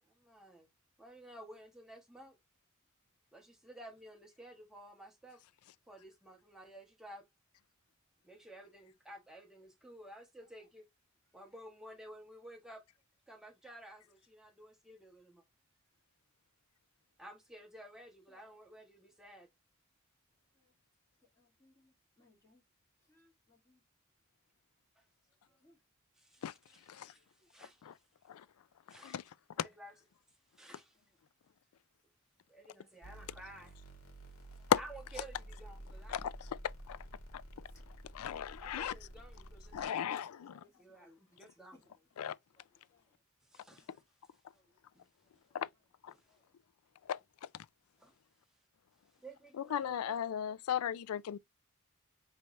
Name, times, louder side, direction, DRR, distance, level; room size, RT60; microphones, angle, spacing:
voice 1, 0.0-0.7 1.0-2.4 3.3-5.4 5.9-7.3 8.2-10.9 11.3-12.8 13.3-15.4 17.2-19.5 25.0-25.1 26.1-28.0 28.9-29.2 29.5-29.9 30.5-31.0 32.5-33.8 34.7-36.2 38.6-40.3 40.8-41.8 43.4-44.0 44.9-45.1 45.3-45.4 46.1-46.4 48.0-48.1 49.2-50.1, right 1 dB, 5° right, 1.2 m, -53 dB
voice 2, 21.3-22.6 23.0-23.8 25.4-25.8 26.4-26.8 27.1-27.5 30.9-31.2 34.5-34.7 37.7-37.8 40.2-42.0 42.3-43.2 44.5-45.6 46.2-46.5, left 2 dB, 15° left, 2.7 m, -69 dB
voice 3, 28.9-29.2 29.6-29.7 34.7-34.8 36.1-36.3 36.6-37.0 37.3-37.4 38.1-38.9 39.7-40.5 42.2-42.4 45.5-45.7 46.0-46.1 47.1-47.2 49.6-51.4, left 9 dB, 85° left, 0.4 m, -35 dB
sound 1, 33.0-39.9, right 1 dB, 70° left, 1.7 m, -51 dB
4.5 x 3.2 x 2.6 m
head